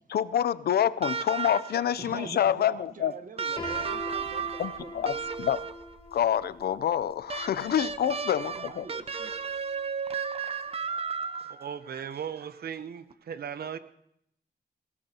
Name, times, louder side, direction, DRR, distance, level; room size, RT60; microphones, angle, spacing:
voice 1, 0.1-3.1 4.6-5.6 6.1-8.9, left 10 dB, 75° left, 17 dB, 0.5 m, -27 dB
sound 1, 1.0-2.0 3.4-5.9 7.3-11.8 13.1-13.2, right 6 dB, 40° right, 0.6 m, -34 dB
voice 2, 2.0-5.2 7.8-9.3, right 4 dB, 55° right, 8 dB, 1.2 m, -44 dB
Piano, 3.6-9.4, left 1 dB, 35° left, 3.8 m, -43 dB
voice 3, 11.3-13.8, right 8 dB, 75° right, 12 dB, 0.8 m, -37 dB
19.0 x 17.0 x 2.8 m, 0.75 s
wide cardioid pair, 135°, 16 cm